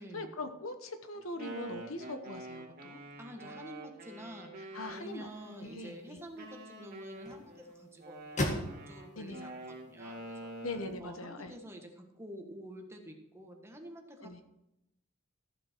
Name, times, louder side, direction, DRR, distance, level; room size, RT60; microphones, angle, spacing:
voice 1, 0.0-3.0 4.7-5.3 5.6-6.2 9.1-9.5 10.6-11.5 14.2-14.4, left 2 dB, 80° left, 8 dB, 1.1 m, -41 dB
Wind instrument woodwind instrument, 1.1-5.9 6.4-11.1, right 1 dB, 50° right, 2.0 m, -46 dB
voice 2, 3.2-10.5 11.0-14.4, equal, 15° right, 2 dB, 1.5 m, -49 dB
sound 1, 4.8-11.0, left 1 dB, 35° left, 1.9 m, -42 dB
14.0 x 7.3 x 4.5 m, 0.84 s
head